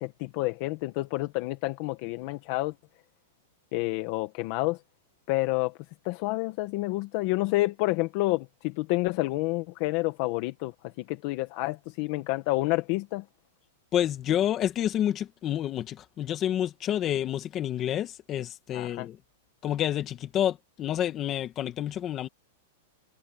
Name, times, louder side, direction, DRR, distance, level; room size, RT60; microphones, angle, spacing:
voice 1, 0.0-2.7 3.7-4.8 5.3-5.7 6.0-10.7 11.1-13.2 18.7-19.1, left 20 dB, 35° left, 1.3 m, -29 dB
voice 2, 13.9-19.2 19.6-22.3, left 11 dB, 20° left, 1.8 m, -29 dB
supercardioid pair, 170°, 0 cm